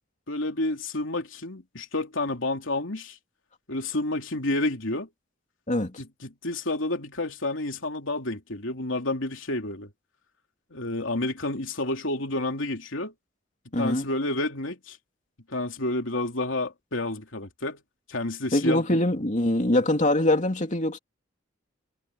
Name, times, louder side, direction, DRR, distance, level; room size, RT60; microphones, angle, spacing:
voice 1, 0.3-3.2 3.7-5.1 6.0-9.9 10.7-13.1 13.7-15.0 15.5-17.8 18.1-18.8, left 2 dB, 80° left, 3.1 m, -30 dB
voice 2, 5.7-6.0 13.7-14.1 18.5-21.0, left 1 dB, 40° left, 2.6 m, -23 dB
head